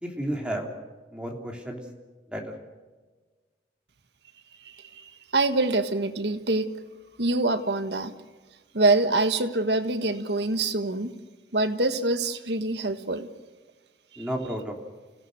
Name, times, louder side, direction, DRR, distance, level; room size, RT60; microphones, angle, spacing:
voice 1, 0.0-0.7 1.1-1.8 2.3-2.4 14.2-14.7, right 1 dB, 5° right, 1 dB, 3.2 m, -32 dB
voice 2, 4.6-6.7 7.2-8.1 8.7-11.1 11.5-13.3 14.1-14.3, right 2 dB, 65° right, 9 dB, 1.6 m, -25 dB
29.5 x 17.0 x 6.7 m, 1.3 s
head